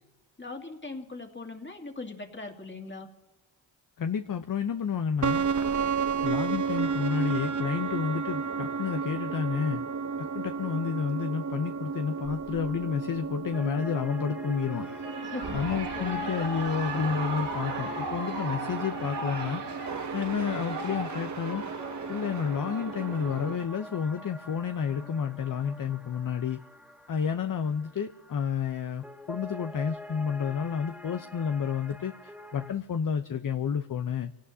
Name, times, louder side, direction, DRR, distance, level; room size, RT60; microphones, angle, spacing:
voice 1, 0.4-3.1 15.2-16.7, left 3 dB, 25° left, 3 dB, 2.4 m, -41 dB
voice 2, 4.0-5.5 6.2-9.8 10.2-14.9 15.5-21.6 22.1-26.6 27.1-34.3, left 7 dB, 40° left, 8 dB, 0.8 m, -30 dB
sound 1, 5.2-23.6, right 5 dB, 35° right, 0.9 m, -33 dB
sound 2, 13.5-32.7, left 1 dB, ahead, 1.9 m, -47 dB
Shout / Cheering, 14.7-23.6, right 3 dB, 60° right, 2.7 m, -37 dB
28.0 x 18.0 x 2.8 m, 1.1 s
cardioid pair, 55°, 48 cm